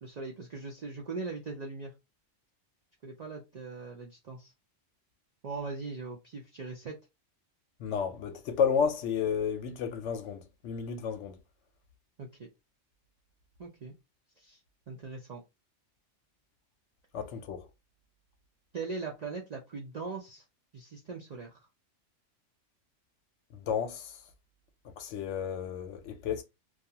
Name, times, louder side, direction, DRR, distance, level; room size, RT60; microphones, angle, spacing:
voice 1, 0.0-1.9 3.0-4.5 5.4-7.0 12.2-12.5 13.6-13.9 14.4-14.6 14.9-15.4 18.7-20.4 20.7-21.7, right 4 dB, 60° right, 0.4 m, -40 dB
voice 2, 7.8-11.4 17.1-17.6 23.7-24.1 25.0-26.4, left 7 dB, 75° left, 0.9 m, -31 dB
2.3 x 2.3 x 2.7 m
omnidirectional pair, 1.3 m